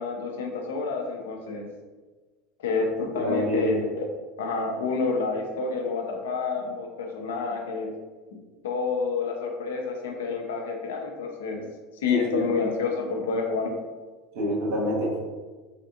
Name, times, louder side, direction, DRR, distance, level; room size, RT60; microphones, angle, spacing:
voice 1, 0.0-1.7 2.6-4.0 4.4-8.0 8.6-11.6 11.9-13.8, left 4 dB, 85° left, 2 dB, 0.5 m, -29 dB
voice 2, 3.2-3.6 12.1-12.5 14.3-15.3, left 1 dB, 75° right, -3 dB, 0.9 m, -26 dB
3.4 x 2.5 x 2.7 m, 1.3 s
hypercardioid pair, 90°, 0 cm